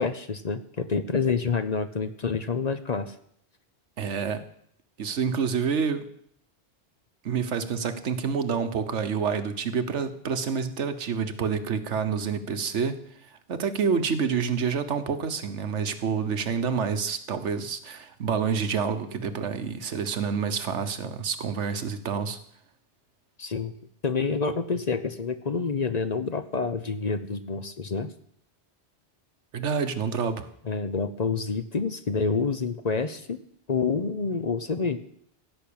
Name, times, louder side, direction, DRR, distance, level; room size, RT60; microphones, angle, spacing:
voice 1, 0.0-3.1 23.4-23.7 24.0-28.1 30.6-33.4 33.7-35.0, left 4 dB, 40° left, 10 dB, 0.8 m, -28 dB
voice 2, 4.0-4.4 5.0-6.1 7.2-22.4 29.5-30.5, right 6 dB, 90° right, 9 dB, 1.4 m, -28 dB
16.0 x 6.1 x 8.6 m, 0.67 s
omnidirectional pair, 1.2 m